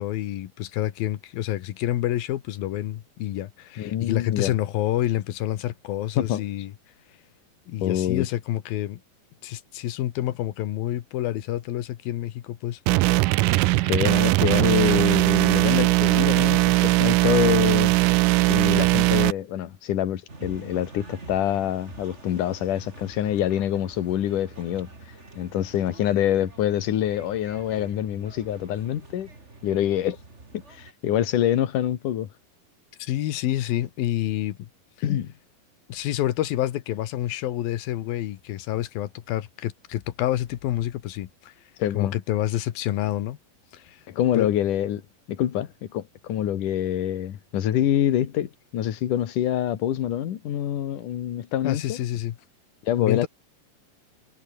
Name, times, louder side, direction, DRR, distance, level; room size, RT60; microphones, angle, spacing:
voice 1, 0.0-6.7 7.7-9.0 9.4-12.8 33.0-34.7 35.9-41.5 41.9-43.4 43.7-44.0 44.3-44.5 51.6-52.4 53.0-53.3, left 13 dB, 85° left, 3.1 m, -28 dB
voice 2, 3.8-4.5 6.2-6.4 7.8-8.3 13.8-17.9 18.5-24.9 25.4-29.3 29.6-30.2 30.7-32.3 35.0-35.3 41.8-42.2 44.1-45.0 45.3-52.0 52.8-53.3, left 11 dB, 65° left, 3.2 m, -25 dB
sound 1, 12.9-19.3, right 20 dB, 80° right, 2.0 m, -20 dB
sound 2, 20.3-30.9, right 2 dB, 20° right, 3.7 m, -46 dB
omnidirectional pair, 4.1 m